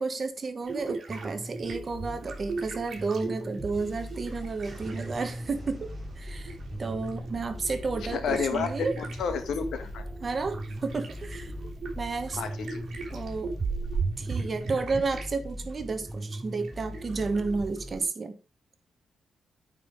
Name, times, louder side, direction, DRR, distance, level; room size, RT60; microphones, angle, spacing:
voice 1, 0.0-8.9 10.2-11.5 12.0-12.4 13.1-13.5 14.2-18.4, right 4 dB, 30° right, 1.3 m, -32 dB
sound 1, 0.6-5.6 5.9-15.3 15.6-18.0, right 4 dB, 45° right, 3.3 m, -38 dB
sound 2, 1.1-18.0, equal, 5° right, 0.6 m, -40 dB
Thunderstorm, 3.7-15.2, left 1 dB, 10° left, 4.1 m, -48 dB
voice 2, 8.1-10.0 12.4-12.8, left 6 dB, 85° left, 1.5 m, -31 dB
9.1 x 4.9 x 5.2 m
wide cardioid pair, 160°, 0 cm